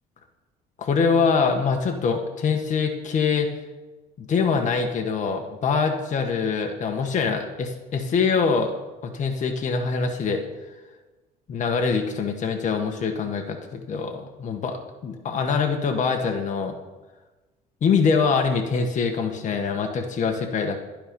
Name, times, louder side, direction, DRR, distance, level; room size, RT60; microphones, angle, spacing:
voice 1, 0.8-3.5 4.2-8.7 9.0-10.4 11.5-16.8 17.8-20.8, left 5 dB, 45° left, 3 dB, 1.5 m, -24 dB
12.5 x 11.5 x 5.3 m, 1.2 s
cardioid pair, 110°, 17 cm